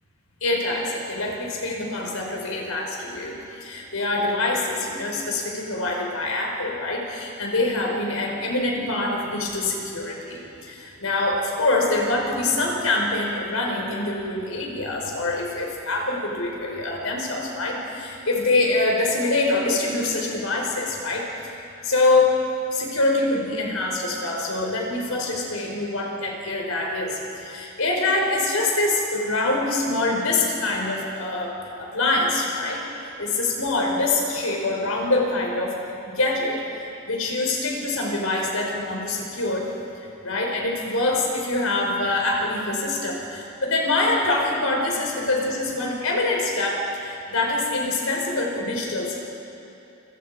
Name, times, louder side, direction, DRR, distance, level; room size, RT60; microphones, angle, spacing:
voice 1, 0.4-22.3 22.7-32.8 33.2-35.7 36.0-39.7 40.2-49.2, left 2 dB, 80° left, 0 dB, 5.0 m, -25 dB
29.5 x 24.0 x 5.1 m, 2.9 s
head